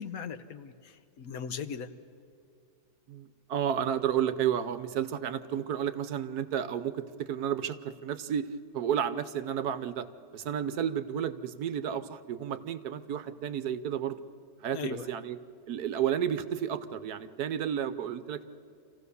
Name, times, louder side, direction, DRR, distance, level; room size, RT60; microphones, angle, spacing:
voice 1, 0.0-1.9 14.7-15.1, left 6 dB, 65° left, 10 dB, 1.1 m, -38 dB
voice 2, 3.1-8.5 8.7-10.1 10.3-14.2 14.6-15.4 15.7-18.5, right 9 dB, 70° right, 12 dB, 1.3 m, -32 dB
27.0 x 15.5 x 6.9 m, 2.4 s
omnidirectional pair, 1.8 m